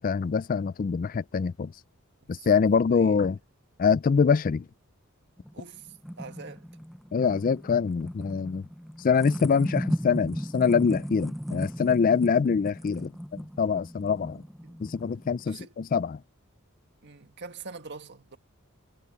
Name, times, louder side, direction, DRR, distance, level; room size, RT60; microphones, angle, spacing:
voice 1, 0.0-1.7 2.3-3.4 3.8-4.6 7.1-8.7 9.0-14.4 14.8-16.2, left 6 dB, 40° left, 0.3 m, -24 dB
voice 2, 2.7-3.2 5.5-6.7 14.6-14.8 15.5-15.7 17.0-18.4, right 4 dB, 55° right, 1.8 m, -44 dB
sound 1, 5.5-15.5, equal, ahead, 0.6 m, -36 dB
head